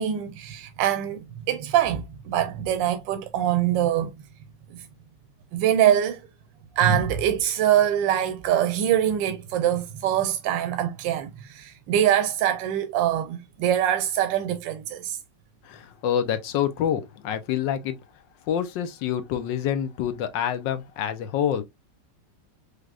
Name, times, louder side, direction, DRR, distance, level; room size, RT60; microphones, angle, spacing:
voice 1, 0.0-4.1 4.7-4.8 5.5-6.2 6.8-15.2, right 10 dB, 85° right, 1.3 m, -24 dB
voice 2, 15.7-18.0 18.5-21.6, left 9 dB, 80° left, 1.4 m, -27 dB
5.2 x 3.3 x 2.4 m
omnidirectional pair, 1.9 m